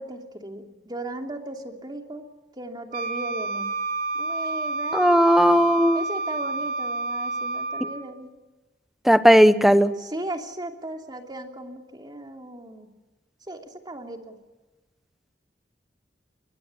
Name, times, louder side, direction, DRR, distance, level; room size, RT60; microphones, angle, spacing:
voice 1, 0.0-2.3 2.5-3.7 4.1-5.3 5.9-8.3 10.0-12.9 13.5-14.4, right 1 dB, 25° right, 3 dB, 2.9 m, -37 dB
Wind instrument woodwind instrument, 2.9-8.1, right 3 dB, 55° right, 1.4 m, -29 dB
voice 2, 4.9-6.0 9.0-9.9, equal, ahead, 11 dB, 1.1 m, -16 dB
27.0 x 23.0 x 8.6 m, 1.1 s
head